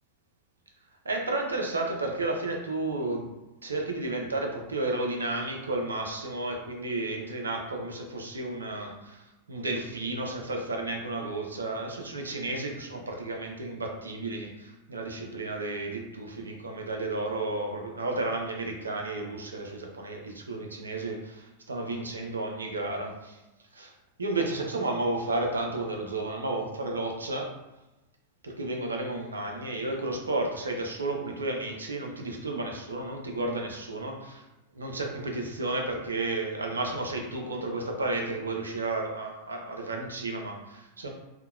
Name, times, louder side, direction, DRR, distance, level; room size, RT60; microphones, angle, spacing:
voice 1, 1.0-3.3 3.6-9.2 9.5-23.4 23.7-23.9 24.2-27.5 28.4-34.4 34.8-41.1, right 2 dB, 75° right, 2 dB, 0.4 m, -32 dB
2.7 x 2.1 x 2.3 m, 1.0 s
figure-of-eight pair, 90°, 0 cm